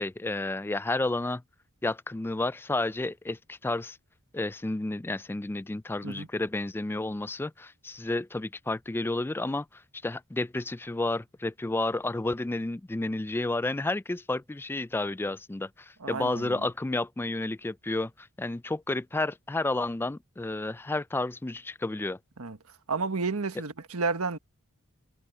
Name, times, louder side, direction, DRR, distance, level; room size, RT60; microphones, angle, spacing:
voice 1, 0.0-1.4 1.8-4.0 4.3-22.2, left 2 dB, 10° left, 0.3 m, -31 dB
voice 2, 16.0-16.7 22.4-22.6 22.9-24.4, right 4 dB, 85° right, 1.4 m, -31 dB
head